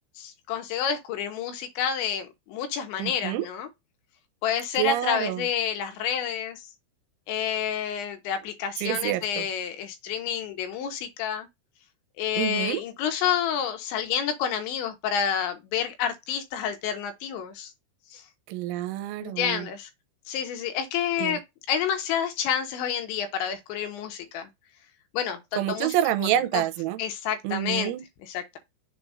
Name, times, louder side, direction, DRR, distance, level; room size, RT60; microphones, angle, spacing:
voice 1, 0.2-3.7 4.4-6.7 7.3-11.5 12.2-17.7 18.1-18.2 19.2-19.9 20.3-21.4 21.7-24.5 25.1-26.3 26.5-26.6 27.0-27.9 28.2-28.6, left 8 dB, 80° left, 3.2 m, -29 dB
voice 2, 3.0-3.5 4.8-5.5 8.8-9.5 12.4-12.8 18.5-19.7 21.2-21.4 25.6-27.0 27.4-28.0, right 13 dB, 85° right, 3.1 m, -27 dB
7.1 x 2.4 x 5.6 m
omnidirectional pair, 5.4 m